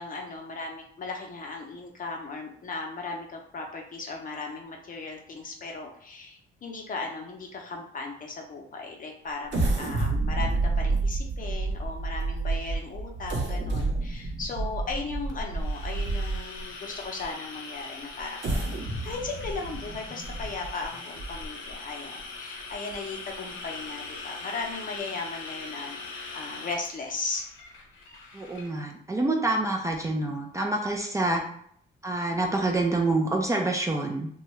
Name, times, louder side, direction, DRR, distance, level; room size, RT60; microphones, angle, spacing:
voice 1, 0.0-18.5 19.0-27.5 31.3-31.5, left 3 dB, 45° left, 1 dB, 0.7 m, -37 dB
sound 1, 9.5-16.6 17.2-17.3 18.2-21.7 22.2-22.3 22.7-22.9, right 3 dB, 65° right, 0.8 m, -29 dB
sound 2, 15.3-28.7, left 4 dB, 80° left, 0.7 m, -42 dB
voice 2, 28.3-31.4 32.0-34.3, right 2 dB, 15° right, 1 dB, 0.4 m, -27 dB
2.6 x 2.3 x 3.1 m, 0.65 s
cardioid pair, 90°, 20 cm